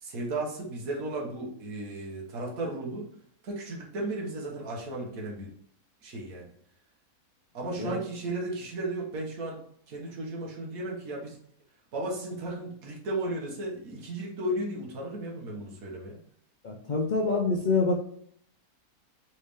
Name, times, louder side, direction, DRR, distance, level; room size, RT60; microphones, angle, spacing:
voice 1, 0.0-3.1 3.4-5.5 6.0-6.5 7.5-9.6 9.9-11.4 11.9-16.2, right 2 dB, 70° right, -2 dB, 1.6 m, -35 dB
voice 2, 16.6-18.0, left 3 dB, 65° left, 0 dB, 0.4 m, -26 dB
4.5 x 3.3 x 3.4 m, 0.65 s
omnidirectional pair, 1.6 m